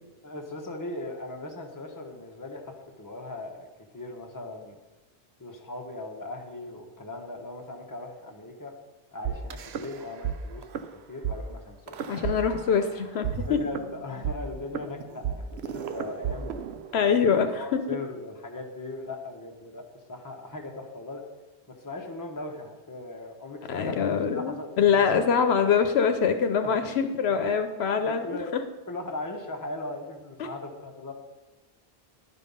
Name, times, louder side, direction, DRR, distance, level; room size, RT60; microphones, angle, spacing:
voice 1, 0.2-3.7 3.9-4.8 5.4-8.7 9.1-10.7 11.1-12.2 13.4-16.5 17.1-19.8 20.1-21.2 21.7-25.3 26.6-26.9 27.3-27.6 28.0-28.6 28.9-31.1, left 2 dB, 20° left, 2 dB, 1.0 m, -38 dB
sound 1, 9.2-10.3 10.6-10.8 11.2-11.3 11.9-12.9 13.2-17.2, right 9 dB, 75° right, 0.9 m, -33 dB
voice 2, 12.1-13.6 16.9-17.6 23.7-28.3 28.5-28.6 30.4-30.5, left 6 dB, 75° left, 7 dB, 0.9 m, -24 dB
11.5 x 5.5 x 5.4 m, 1.2 s
omnidirectional pair, 1.1 m